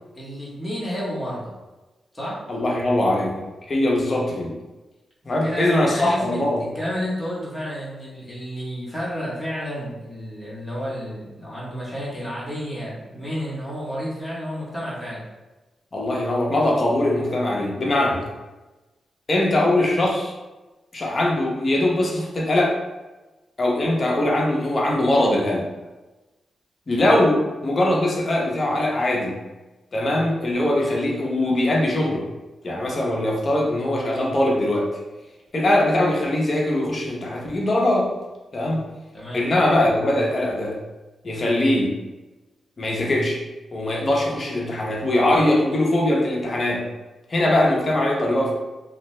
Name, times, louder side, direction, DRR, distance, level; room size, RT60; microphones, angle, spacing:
voice 1, 0.1-1.5 2.1-2.4 5.3-15.2 39.1-39.5, equal, 5° left, -8 dB, 0.9 m, -31 dB
voice 2, 2.5-4.5 5.2-6.7 15.9-18.3 19.3-20.3 20.9-22.8 23.6-25.7 26.9-29.4 29.9-32.2 32.6-34.9 35.5-38.1 38.5-38.8 39.3-40.8 41.2-42.0 42.8-43.4 43.7-46.8 47.3-48.5, left 1 dB, 35° left, -2 dB, 0.6 m, -21 dB
2.6 x 2.1 x 3.1 m, 1.1 s
wide cardioid pair, 130°, 0 cm